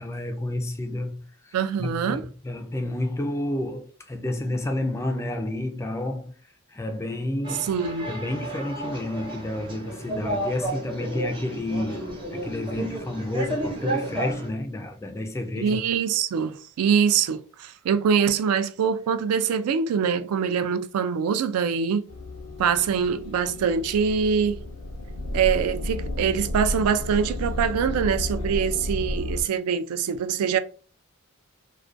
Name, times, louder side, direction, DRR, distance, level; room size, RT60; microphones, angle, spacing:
voice 1, 0.0-6.3 6.7-7.7 8.1-12.1 12.3-15.8, left 1 dB, 15° left, 0.3 m, -30 dB
voice 2, 1.5-2.2 7.6-8.1 15.6-22.0 22.6-24.6 25.3-30.6, right 7 dB, 80° right, 0.3 m, -24 dB
sound 1, 7.4-14.5, right 1 dB, 25° right, 0.6 m, -32 dB
sound 2, 22.1-29.4, left 1 dB, 85° left, 0.6 m, -32 dB
2.3 x 2.2 x 2.4 m
head